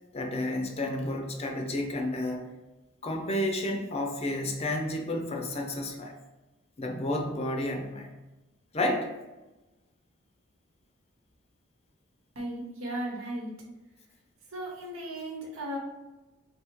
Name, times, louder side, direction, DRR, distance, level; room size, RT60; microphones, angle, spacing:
voice 1, 0.1-2.5 3.0-6.2 6.8-8.1 8.7-9.1, left 1 dB, 30° left, 3 dB, 0.5 m, -31 dB
voice 2, 12.3-13.5 14.5-15.8, right 1 dB, 90° right, -1 dB, 1.1 m, -36 dB
3.4 x 2.8 x 4.5 m, 1.1 s
head